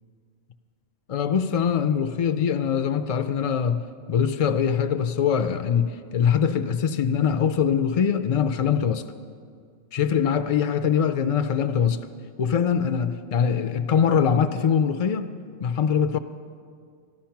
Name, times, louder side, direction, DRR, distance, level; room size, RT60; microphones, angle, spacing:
voice 1, 1.1-9.0 9.9-12.0 12.4-15.3 15.6-16.2, left 7 dB, 60° left, 10 dB, 0.4 m, -23 dB
13.5 x 12.0 x 5.8 m, 2.2 s
omnidirectional pair, 1.2 m